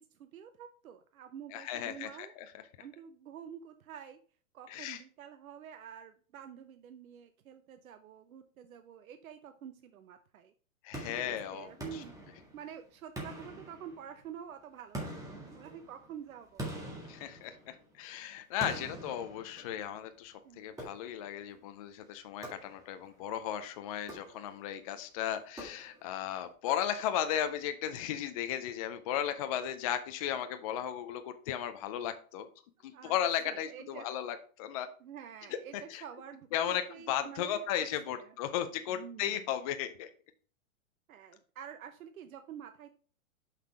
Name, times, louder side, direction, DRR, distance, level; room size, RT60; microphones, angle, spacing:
voice 1, 0.0-2.3 2.8-4.2 4.5-10.5 11.2-12.1 12.5-16.7 18.7-18.8 20.4-20.7 32.9-33.2 33.4-34.1 35.0-38.3 38.9-39.5 41.1-42.9, right 8 dB, 80° right, 8 dB, 0.8 m, -48 dB
voice 2, 1.5-2.6 4.7-5.0 10.8-12.0 17.1-32.5 32.8-34.9 35.9-36.0 36.5-40.1, left 10 dB, 30° left, 9 dB, 0.4 m, -35 dB
sound 1, 10.9-12.7 13.2-14.3 14.9-18.0 18.6-20.0 20.8-21.4 22.4-23.1 24.0-24.7 25.6-26.2, right 1 dB, 10° right, 1.8 m, -45 dB
5.8 x 5.7 x 4.9 m, 0.42 s
hypercardioid pair, 145°, 41 cm